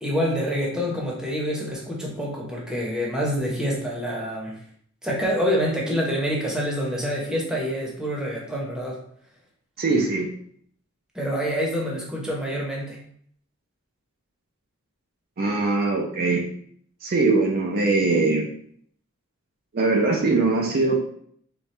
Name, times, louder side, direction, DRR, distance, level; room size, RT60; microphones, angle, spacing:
voice 1, 0.0-4.6 5.0-9.0 11.1-13.0, equal, 5° right, -3 dB, 0.9 m, -26 dB
voice 2, 9.8-10.3 15.4-16.4 17.0-18.5 19.7-21.0, right 3 dB, 45° right, 0 dB, 0.5 m, -21 dB
4.3 x 2.3 x 3.2 m, 0.63 s
head